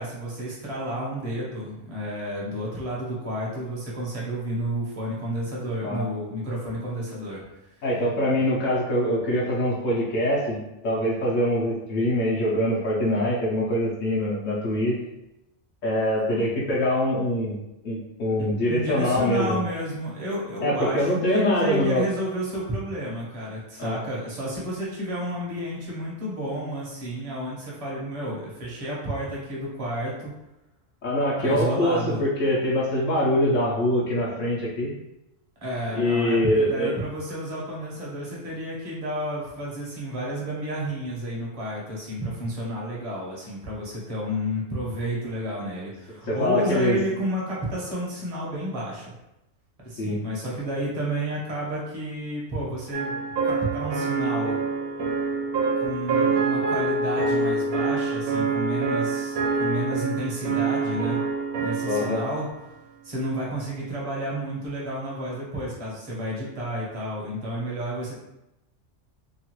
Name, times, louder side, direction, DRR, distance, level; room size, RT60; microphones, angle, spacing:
voice 1, 0.0-7.8 18.4-30.3 31.4-32.2 35.6-49.1 49.8-54.6 55.8-61.2 61.6-62.5 63.0-68.2, equal, 30° right, -5 dB, 0.8 m, -31 dB
voice 2, 7.8-15.0 15.8-17.6 17.8-19.6 20.6-22.0 23.8-24.0 31.0-34.9 35.9-36.9 46.3-47.0 50.0-50.2 61.8-62.2, left 1 dB, 70° left, -5 dB, 1.0 m, -24 dB
sound 1, 52.9-62.4, right 4 dB, 85° right, 1.1 m, -26 dB
3.0 x 2.3 x 2.9 m, 0.93 s
omnidirectional pair, 1.4 m